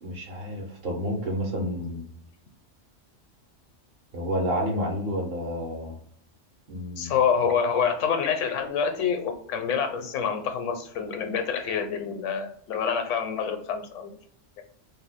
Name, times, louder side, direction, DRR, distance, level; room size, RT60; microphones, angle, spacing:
voice 1, 0.0-2.1 4.1-5.9 6.7-7.1, equal, 60° right, 1 dB, 0.9 m, -30 dB
voice 2, 7.0-14.2, left 6 dB, 80° left, 7 dB, 0.9 m, -27 dB
2.6 x 2.3 x 3.4 m, 0.64 s
omnidirectional pair, 1.3 m